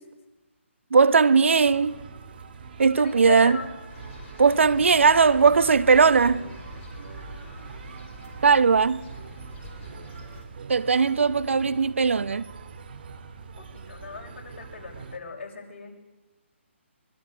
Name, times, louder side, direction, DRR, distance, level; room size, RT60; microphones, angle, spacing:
voice 1, 0.9-2.0 2.8-3.6 4.4-6.5 8.4-9.0 10.7-12.5, right 5 dB, 70° right, 0.9 m, -19 dB
sound 1, 1.6-15.2, right 5 dB, 50° right, 2.1 m, -43 dB
voice 2, 3.0-3.7 13.6-15.9, left 5 dB, 55° left, 6.6 m, -37 dB
sound 2, 3.9-10.4, left 2 dB, 25° left, 4.9 m, -45 dB
24.5 x 22.5 x 6.9 m
figure-of-eight pair, 150°, 7 cm